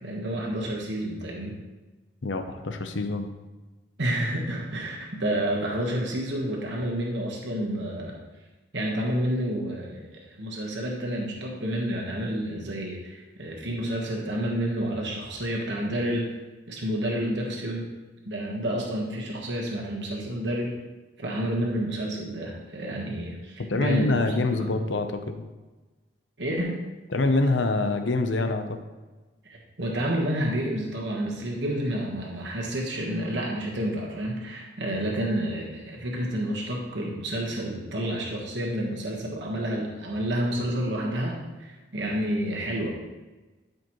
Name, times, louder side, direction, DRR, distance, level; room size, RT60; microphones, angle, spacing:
voice 1, 0.0-1.6 4.0-8.1 8.7-16.3 16.7-17.8 18.2-20.7 21.2-24.7 26.4-26.8 29.4-42.9, right 1 dB, 70° right, -2 dB, 1.3 m, -29 dB
voice 2, 2.2-3.3 23.7-25.4 27.1-28.8, left 2 dB, 75° left, 7 dB, 0.8 m, -25 dB
12.5 x 5.3 x 3.1 m, 1.2 s
head